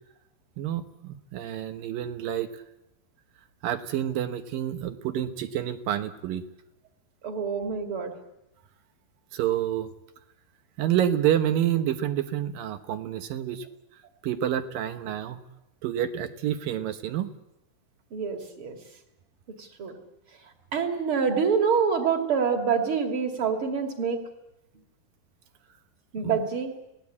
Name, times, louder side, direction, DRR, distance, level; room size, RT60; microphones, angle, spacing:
voice 1, 0.6-2.6 3.6-6.4 9.3-9.9 10.8-13.7 14.2-15.4 15.8-17.3 26.2-26.4, right 11 dB, 65° right, 9 dB, 2.6 m, -28 dB
voice 2, 7.2-8.1 18.1-18.8 19.6-19.9 20.7-24.2 26.1-26.7, right 6 dB, 35° right, 5 dB, 2.8 m, -26 dB
29.0 x 18.5 x 8.6 m, 0.92 s
omnidirectional pair, 4.8 m